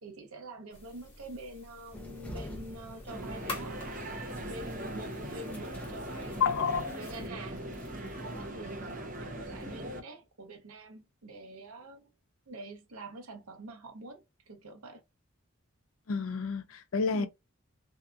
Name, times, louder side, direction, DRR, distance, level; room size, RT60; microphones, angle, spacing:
voice 1, 0.0-4.1 4.3-6.3 6.9-7.6 8.2-12.0 12.5-15.0 17.1-17.3, right 2 dB, 85° right, 0.8 m, -46 dB
sound 1, 0.7-7.3, left 2 dB, 25° left, 1.1 m, -48 dB
sound 2, 1.9-8.5, left 1 dB, 5° left, 0.5 m, -47 dB
sound 3, 3.1-10.0, right 1 dB, 40° right, 0.6 m, -40 dB
voice 2, 6.4-7.0 16.1-17.3, left 5 dB, 75° left, 0.4 m, -29 dB
2.7 x 2.3 x 2.3 m
head